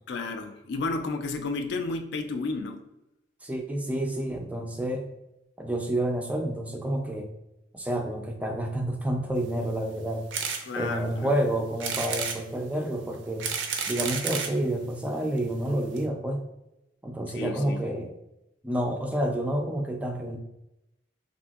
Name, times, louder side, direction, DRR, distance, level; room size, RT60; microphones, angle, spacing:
voice 1, 0.1-2.8 10.6-11.4 17.3-17.8, left 3 dB, 65° left, 6 dB, 0.3 m, -32 dB
voice 2, 3.4-5.1 5.6-7.3 7.7-10.2 10.8-13.5 13.9-16.4 17.0-18.1 18.6-20.4, right 1 dB, 10° right, 3 dB, 0.3 m, -29 dB
sound 1, 10.3-10.6 11.1-11.2 11.8-12.4 13.1-14.6 15.4-15.5 15.7-15.8 16.0-16.1, right 6 dB, 90° right, 0.5 m, -31 dB
3.5 x 2.5 x 2.3 m, 0.89 s
head